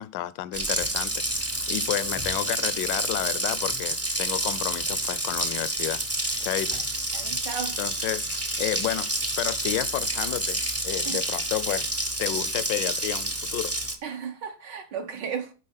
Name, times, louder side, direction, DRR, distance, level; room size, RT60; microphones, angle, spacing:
voice 1, 0.0-1.4 1.7-6.0 6.4-6.8 7.8-9.1 9.4-11.9 12.2-13.8, left 14 dB, 75° left, 1.2 m, -31 dB
Water tap faucet, 0.5-13.9, right 1 dB, 20° right, 0.3 m, -29 dB
voice 2, 7.1-7.8 11.0-11.2 14.0-15.5, right 7 dB, 70° right, 1.5 m, -34 dB
10.0 x 4.0 x 5.6 m
omnidirectional pair, 2.1 m